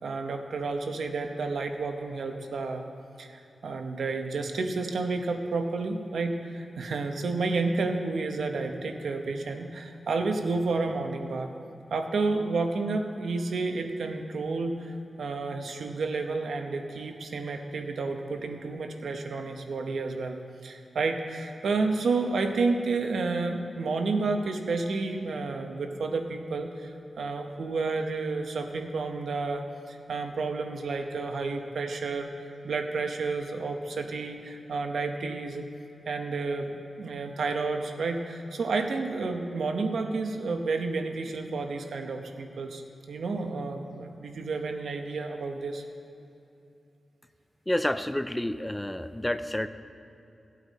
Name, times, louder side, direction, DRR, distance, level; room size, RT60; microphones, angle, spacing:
voice 1, 0.0-2.8 3.2-11.5 11.9-32.3 32.6-35.6 36.1-42.8 43.1-45.8, right 3 dB, 85° right, 4 dB, 0.9 m, -30 dB
voice 2, 47.7-49.7, left 1 dB, 10° left, 11 dB, 0.4 m, -29 dB
16.0 x 8.8 x 4.1 m, 2.7 s
wide cardioid pair, 100°, 0 cm